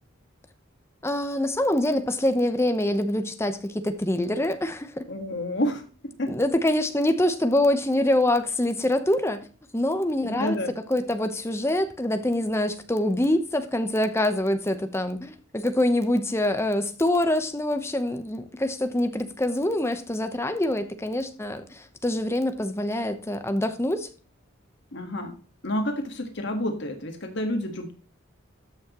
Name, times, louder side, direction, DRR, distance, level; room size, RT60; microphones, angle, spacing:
voice 1, 1.0-5.0 6.3-9.5 9.7-10.6 10.9-24.1, left 1 dB, 15° left, 0.9 m, -25 dB
voice 2, 5.1-5.8 6.2-6.4 10.2-10.7 24.9-25.3 25.6-27.9, left 1 dB, 55° left, 1.6 m, -29 dB
13.0 x 6.3 x 3.0 m
head